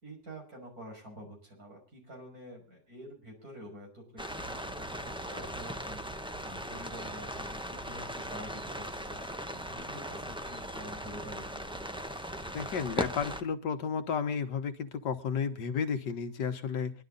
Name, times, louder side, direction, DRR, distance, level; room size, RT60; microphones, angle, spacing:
voice 1, 0.0-6.0 6.4-11.8, equal, 55° right, 0 dB, 6.4 m, -48 dB
sound 1, 4.2-13.4, equal, 5° right, 0.4 m, -39 dB
voice 2, 12.5-16.9, left 6 dB, 80° left, 8 dB, 1.8 m, -32 dB
23.5 x 11.5 x 3.9 m, 0.34 s
omnidirectional pair, 1.8 m